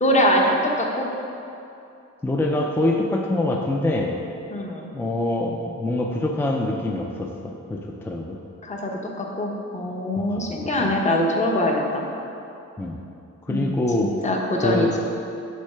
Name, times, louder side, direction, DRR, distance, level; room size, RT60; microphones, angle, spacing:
voice 1, 0.0-1.1 4.5-4.9 8.6-8.9 9.2-12.0 13.5-13.7 14.0-14.9, left 1 dB, 25° left, 0 dB, 0.8 m, -23 dB
voice 2, 2.2-4.1 4.9-8.4 10.3-10.9 12.8-13.0 13.4-14.1 14.6-15.0, left 1 dB, 10° left, 0 dB, 0.4 m, -25 dB
6.3 x 3.6 x 5.6 m, 2.7 s
cardioid pair, 110°, 30 cm